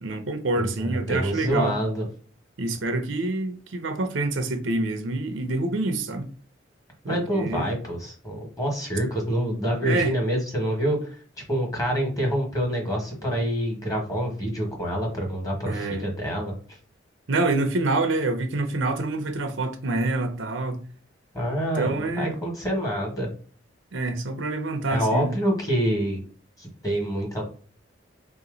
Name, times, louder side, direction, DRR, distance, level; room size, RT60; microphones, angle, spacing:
voice 1, 0.0-1.8 2.6-6.3 7.0-7.6 9.8-10.1 15.6-16.1 17.3-20.8 21.7-22.4 23.9-25.3, right 2 dB, 75° right, 0.7 m, -26 dB
voice 2, 0.6-2.0 7.1-11.0 11.5-16.5 21.3-23.3 24.9-26.2 26.6-27.4, equal, 20° left, 1.4 m, -26 dB
3.6 x 2.9 x 3.8 m
head